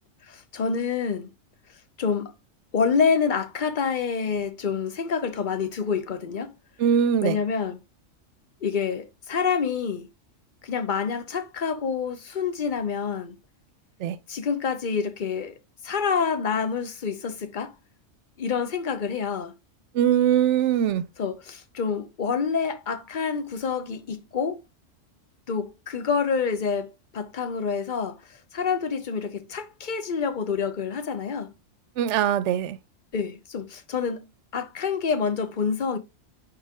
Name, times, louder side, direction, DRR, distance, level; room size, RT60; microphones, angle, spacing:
voice 1, 0.3-1.3 2.0-2.3 2.7-6.5 7.2-7.8 8.6-10.1 10.6-13.4 14.3-15.5 15.8-17.7 18.4-19.5 21.2-24.6 25.5-28.2 28.5-31.5 33.1-34.3 34.5-36.0, left 6 dB, 45° left, 0.8 m, -27 dB
voice 2, 6.8-7.4 14.0-14.2 19.9-21.1 32.0-32.8, right 9 dB, 70° right, 0.9 m, -21 dB
8.9 x 3.2 x 3.5 m
omnidirectional pair, 1.3 m